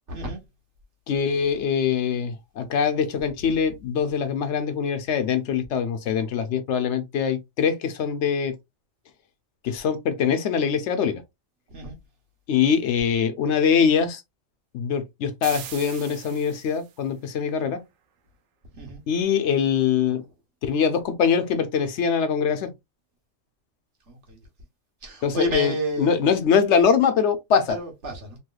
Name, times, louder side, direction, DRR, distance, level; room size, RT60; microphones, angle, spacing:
voice 1, 0.1-0.4 11.7-12.0 18.8-19.0 20.1-20.3 24.1-24.5 25.0-26.4 27.7-28.4, right 1 dB, 65° right, 1.3 m, -31 dB
voice 2, 1.1-8.5 9.6-11.2 12.5-14.2 14.7-17.8 19.1-20.2 20.6-22.7 25.2-25.7 26.0-27.8, left 7 dB, 65° left, 0.8 m, -23 dB
sound 1, 15.4-17.0, right 8 dB, 90° right, 1.1 m, -39 dB
3.0 x 3.0 x 2.2 m
omnidirectional pair, 1.3 m